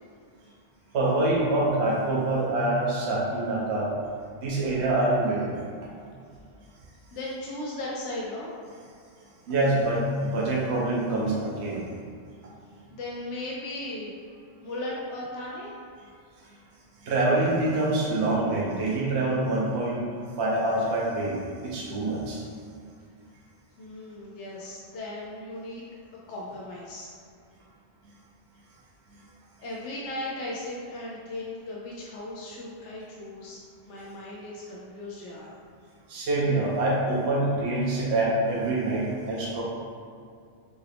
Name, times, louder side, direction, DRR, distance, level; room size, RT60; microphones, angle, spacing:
voice 1, 0.9-3.9 4.3-5.6 9.5-11.8 17.0-20.0 20.4-22.4 36.1-39.6, right 2 dB, 70° right, -5 dB, 1.0 m, -25 dB
voice 2, 7.1-8.5 12.9-15.7 23.8-25.9 26.3-27.1 29.6-33.6 33.9-35.6, left 1 dB, 85° left, -4 dB, 1.0 m, -37 dB
6.5 x 2.4 x 3.4 m, 2.3 s
omnidirectional pair, 1.2 m